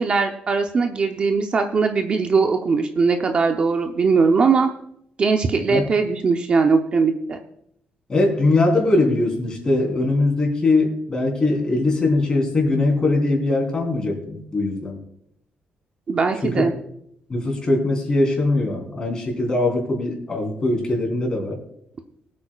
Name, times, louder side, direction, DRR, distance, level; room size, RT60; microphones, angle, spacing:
voice 1, 0.0-4.7 5.2-7.4 16.1-16.7, right 4 dB, 35° right, 5 dB, 0.7 m, -20 dB
voice 2, 8.1-15.0 16.4-16.6 17.3-21.6, left 2 dB, 25° left, 0 dB, 3.6 m, -21 dB
23.0 x 8.5 x 2.4 m, 0.74 s
cardioid pair, 155°, 3 cm